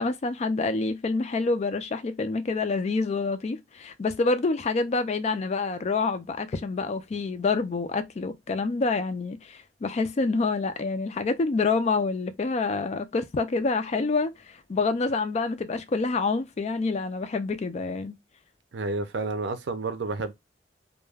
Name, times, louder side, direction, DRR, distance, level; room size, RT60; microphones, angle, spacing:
voice 1, 0.0-18.2, left 3 dB, 35° left, 0.3 m, -27 dB
voice 2, 18.7-20.3, right 3 dB, 85° right, 0.5 m, -30 dB
2.2 x 2.1 x 3.2 m
head